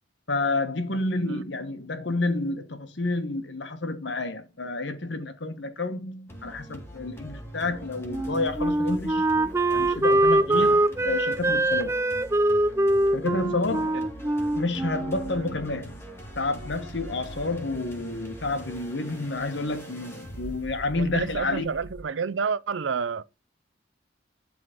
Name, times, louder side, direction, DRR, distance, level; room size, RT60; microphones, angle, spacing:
voice 1, 0.3-9.3 9.7-12.0 13.1-14.0 14.5-16.0 16.4-21.7, left 2 dB, 75° left, 1.2 m, -30 dB
sound 1, 6.3-22.0, right 1 dB, 15° left, 2.1 m, -42 dB
Wind instrument woodwind instrument, 8.1-15.6, right 1 dB, 15° right, 0.4 m, -23 dB
voice 2, 10.5-10.8 13.9-14.1 15.3-15.5 20.9-23.2, right 5 dB, 90° right, 0.5 m, -30 dB
11.0 x 3.8 x 5.1 m
head